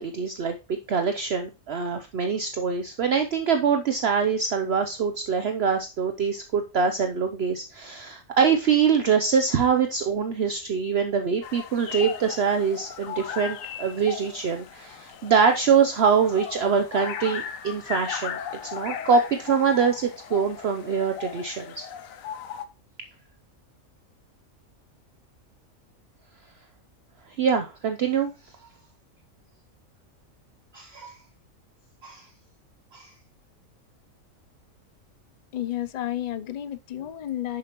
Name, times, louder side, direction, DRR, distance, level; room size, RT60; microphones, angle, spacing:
voice 1, 0.0-18.4 18.7-21.9 27.4-28.3 30.7-31.2 32.0-32.3 32.9-33.1, right 6 dB, 55° right, 0.9 m, -24 dB
sound 1, 11.4-22.7, left 8 dB, 85° left, 1.2 m, -37 dB
voice 2, 35.5-37.6, left 12 dB, 70° left, 0.4 m, -31 dB
10.0 x 6.8 x 3.0 m
omnidirectional pair, 1.4 m